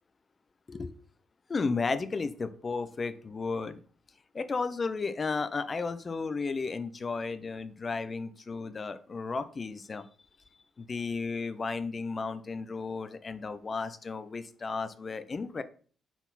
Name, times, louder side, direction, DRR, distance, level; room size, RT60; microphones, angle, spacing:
voice 1, 1.5-3.8 4.3-10.0 10.8-15.6, left 4 dB, 40° left, 12 dB, 0.6 m, -33 dB
6.0 x 4.0 x 4.1 m, 0.42 s
hypercardioid pair, 45°, 0 cm